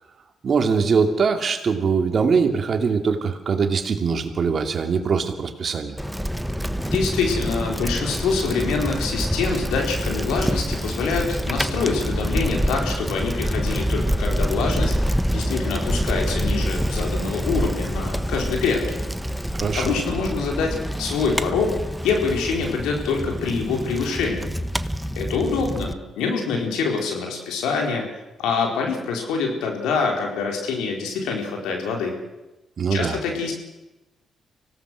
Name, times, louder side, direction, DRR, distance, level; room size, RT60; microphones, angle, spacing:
voice 1, 0.4-6.0 19.6-20.0 32.8-33.2, right 5 dB, 55° right, 6 dB, 2.5 m, -22 dB
Bicycle, 6.0-25.9, equal, ahead, 1.3 m, -26 dB
voice 2, 6.8-15.0 15.3-18.9 19.7-21.8 22.0-24.5 25.2-28.1 28.4-32.2 32.9-33.5, left 4 dB, 80° left, 1 dB, 4.4 m, -25 dB
25.0 x 17.5 x 6.4 m, 1.0 s
hypercardioid pair, 50°, 0 cm